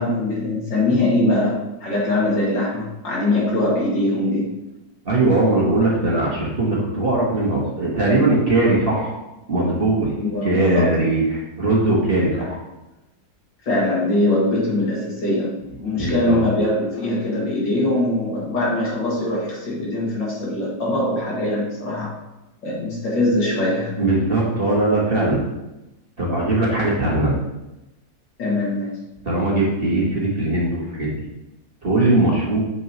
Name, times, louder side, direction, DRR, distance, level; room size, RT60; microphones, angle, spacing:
voice 1, 0.0-4.5 10.2-10.9 12.4-12.5 13.6-22.1 22.6-23.9 28.4-28.9, left 1 dB, 80° left, -5 dB, 2.8 m, -22 dB
voice 2, 5.0-9.2 9.5-10.1 10.4-12.6 15.9-16.4 24.0-25.4 26.2-27.4 29.2-31.1 31.8-32.6, right 2 dB, 35° right, -4 dB, 1.4 m, -20 dB
7.0 x 6.4 x 2.9 m, 0.96 s
omnidirectional pair, 2.0 m